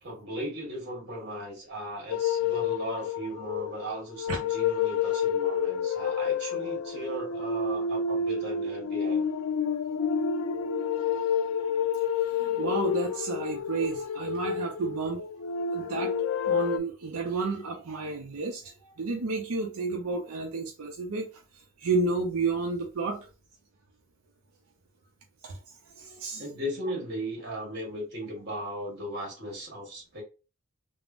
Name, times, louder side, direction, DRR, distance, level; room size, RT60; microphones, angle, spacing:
voice 1, 0.0-9.3 26.4-30.2, equal, 50° right, 1.6 m, -37 dB
sound 1, 2.1-16.8, left 6 dB, 85° left, 0.3 m, -29 dB
voice 2, 12.4-15.3 15.7-16.1 16.5-21.3 21.8-23.2 25.4-25.5 26.0-26.4, right 3 dB, 90° right, 0.5 m, -31 dB
3.5 x 2.0 x 2.4 m
head